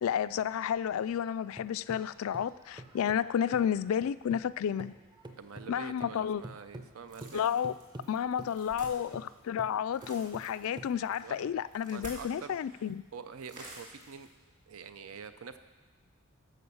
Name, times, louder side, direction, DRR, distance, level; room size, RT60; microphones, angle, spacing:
voice 1, 0.0-4.9 5.7-6.4 7.3-7.7 8.1-13.0, left 8 dB, 70° left, 16 dB, 0.3 m, -31 dB
sound 1, 1.1-4.5 4.8-11.5, right 1 dB, 20° right, 0.7 m, -49 dB
voice 2, 5.4-7.5 11.2-11.5 11.9-12.8 13.1-14.3 14.7-15.6, right 6 dB, 80° right, 11 dB, 0.6 m, -46 dB
sound 2, 7.1-12.6 12.8-13.0 13.4-14.3, right 2 dB, 35° right, 2.5 m, -50 dB
12.5 x 5.2 x 7.0 m, 1.3 s
head